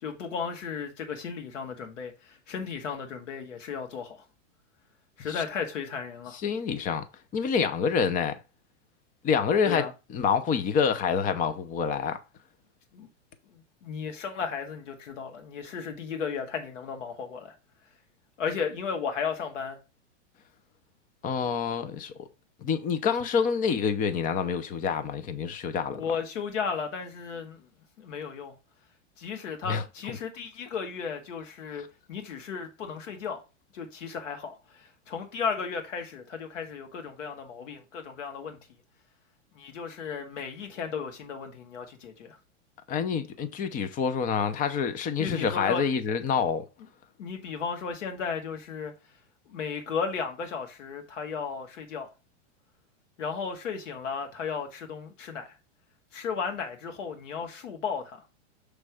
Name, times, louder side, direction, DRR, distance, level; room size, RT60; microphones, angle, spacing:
voice 1, 0.0-4.2 5.2-6.4 9.7-9.9 12.9-13.1 13.5-17.5 18.4-19.8 25.9-27.7 28.0-28.6 29.2-33.4 33.7-38.6 39.6-42.4 45.2-45.9 47.2-48.9 49.5-52.1 53.2-55.6 56.1-58.2, left 6 dB, 85° left, 1.9 m, -35 dB
voice 2, 6.3-7.1 7.3-8.4 9.2-9.9 10.1-12.2 21.2-22.3 22.6-26.0 29.7-29.8 42.9-46.7, left 6 dB, 20° left, 0.7 m, -27 dB
6.5 x 3.3 x 4.8 m
supercardioid pair, 140°, 36 cm